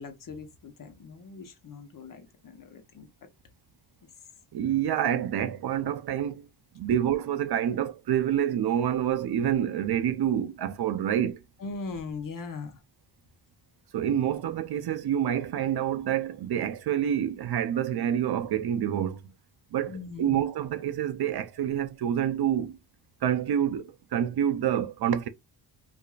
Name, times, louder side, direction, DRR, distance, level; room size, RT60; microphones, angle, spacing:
voice 1, 0.0-3.1 11.6-12.8 19.9-20.4, left 4 dB, 50° left, 0.9 m, -40 dB
voice 2, 4.5-6.5 6.8-11.4 13.9-19.3 19.7-22.8 23.2-25.3, right 10 dB, 65° right, 0.6 m, -27 dB
4.8 x 2.5 x 2.3 m
wide cardioid pair, 130°, 42 cm